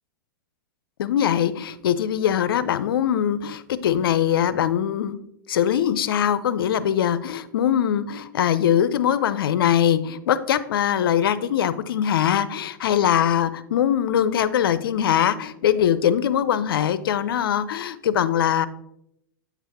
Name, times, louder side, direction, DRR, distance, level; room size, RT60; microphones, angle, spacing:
voice 1, 1.0-5.2 5.5-18.7, left 9 dB, 80° left, 15 dB, 0.5 m, -22 dB
8.1 x 4.1 x 4.1 m, 0.80 s
hypercardioid pair, 140°, 12 cm